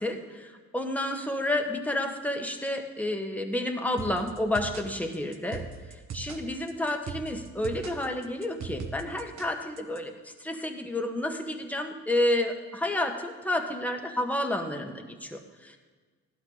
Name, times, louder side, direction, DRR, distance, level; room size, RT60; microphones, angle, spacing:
voice 1, 0.0-5.6 5.9-15.8, left 1 dB, 5° left, 3 dB, 1.5 m, -30 dB
sound 1, 4.0-10.0, right 5 dB, 65° right, 1.4 m, -40 dB
16.5 x 12.0 x 4.0 m, 1.4 s
cardioid pair, 90°, 30 cm